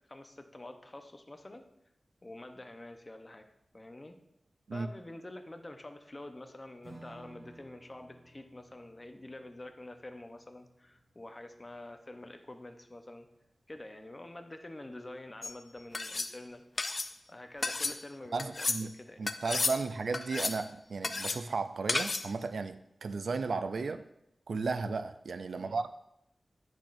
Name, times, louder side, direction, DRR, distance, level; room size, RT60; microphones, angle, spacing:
voice 1, 0.1-1.6 2.2-3.5 3.7-4.2 4.7-13.3 13.7-16.6 17.3-19.8 23.8-24.0 25.5-25.8, left 1 dB, 35° left, 0.8 m, -47 dB
Strum, 6.8-13.7, right 2 dB, 60° right, 2.0 m, -58 dB
sound 1, 15.4-15.6 15.9-16.3 16.8-17.1 17.6-18.0 18.4-18.8 19.3-19.8 20.1-20.6 21.0-21.4 21.9-22.3, left 3 dB, 55° left, 0.5 m, -32 dB
voice 2, 18.3-18.9 19.2-24.0 24.5-25.9, right 4 dB, 85° right, 0.4 m, -34 dB
10.0 x 6.2 x 2.6 m
wide cardioid pair, 60°, 0 cm